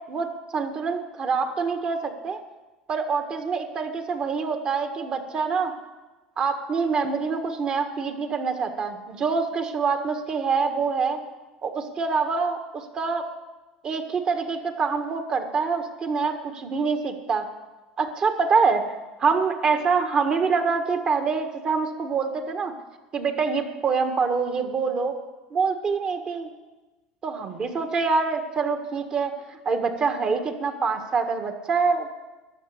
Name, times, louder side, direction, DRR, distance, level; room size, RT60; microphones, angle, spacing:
voice 1, 0.5-2.4 2.9-5.7 6.4-11.2 11.6-13.2 13.8-17.4 18.0-18.8 19.2-22.7 23.1-25.1 25.5-26.5 27.2-32.1, right 5 dB, 40° right, 6 dB, 1.7 m, -25 dB
12.0 x 6.9 x 8.4 m, 1.1 s
hypercardioid pair, 90°, 3 cm